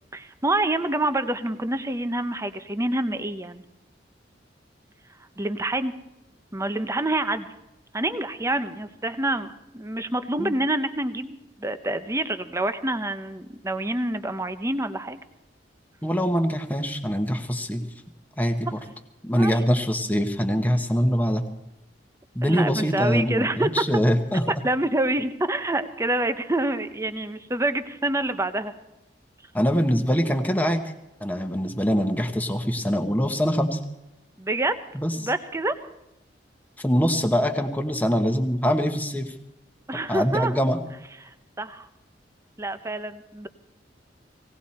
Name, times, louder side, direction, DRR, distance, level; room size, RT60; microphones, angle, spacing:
voice 1, 0.1-3.6 5.4-5.9 6.5-7.5 7.9-15.2 19.3-19.6 22.4-23.8 24.5-28.7 34.4-34.8 35.2-35.7 39.9-40.6 41.2-41.9 42.6-43.5, right 2 dB, 15° right, 10 dB, 0.8 m, -27 dB
voice 2, 16.0-17.8 18.4-18.8 19.2-21.4 22.3-24.4 29.5-30.8 31.2-33.8 34.9-35.1 36.8-39.3 40.1-40.8, equal, 10° left, 5 dB, 1.2 m, -23 dB
19.0 x 17.5 x 4.3 m, 0.93 s
head